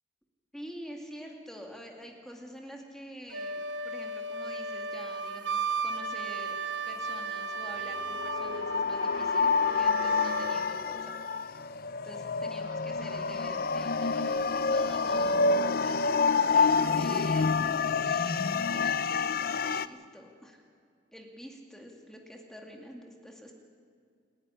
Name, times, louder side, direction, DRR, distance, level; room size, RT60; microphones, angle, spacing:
voice 1, 0.5-6.6 6.8-11.1 11.5-15.6 15.8-17.6 18.0-20.6 21.1-23.5, equal, 5° left, 1 dB, 2.4 m, -47 dB
Wind instrument woodwind instrument, 3.3-10.7, right 3 dB, 85° right, 1.1 m, -35 dB
sound 1, 7.6-19.9, left 4 dB, 50° left, 0.5 m, -28 dB
28.0 x 11.0 x 9.8 m, 2.3 s
head